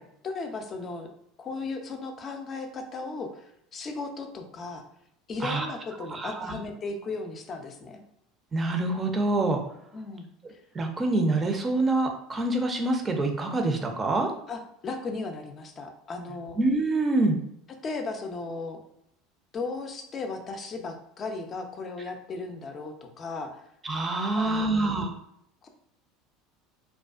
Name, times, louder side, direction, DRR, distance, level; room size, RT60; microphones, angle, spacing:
voice 1, 0.2-1.1 1.4-4.8 5.3-8.0 9.9-10.3 14.5-16.6 17.8-18.8 19.5-23.6 24.3-25.1 25.6-25.7, left 3 dB, 35° left, 4 dB, 0.4 m, -36 dB
voice 2, 6.1-6.6 8.5-9.6 10.8-14.3 16.6-17.4 23.8-25.1, right 2 dB, 25° right, 3 dB, 0.5 m, -26 dB
2.4 x 2.2 x 2.3 m, 0.75 s
hypercardioid pair, 85°, 0 cm